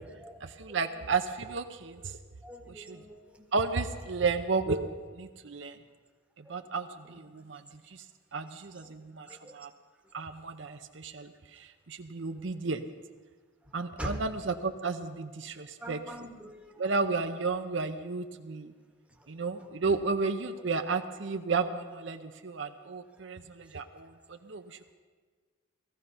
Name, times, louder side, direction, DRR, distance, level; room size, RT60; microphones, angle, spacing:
voice 1, 0.4-2.2 2.6-3.0 3.5-5.8 6.4-8.1 8.3-9.7 10.1-12.9 13.7-16.3 16.8-18.7 19.3-24.9, right 4 dB, 65° right, 7 dB, 0.7 m, -33 dB
voice 2, 2.4-3.5 6.4-6.6 7.4-7.5 9.3-9.5 14.0-14.2 15.8-16.7, equal, 5° right, 1 dB, 1.4 m, -42 dB
18.0 x 14.5 x 5.6 m, 1.5 s
head